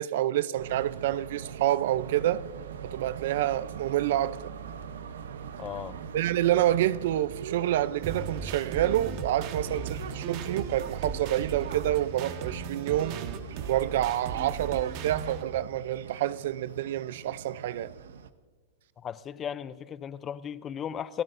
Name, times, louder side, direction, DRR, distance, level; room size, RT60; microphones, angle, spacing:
voice 1, 0.0-2.5 2.8-4.5 6.1-13.2 13.7-17.9, right 13 dB, 65° right, 0.5 m, -28 dB
sound 1, 0.6-18.3, right 7 dB, 90° right, 0.9 m, -42 dB
voice 2, 5.6-6.0 19.0-21.2, left 8 dB, 20° left, 0.5 m, -36 dB
sound 2, 8.0-15.4, right 6 dB, 45° right, 1.4 m, -37 dB
30.0 x 16.5 x 2.6 m
supercardioid pair, 150°, 0 cm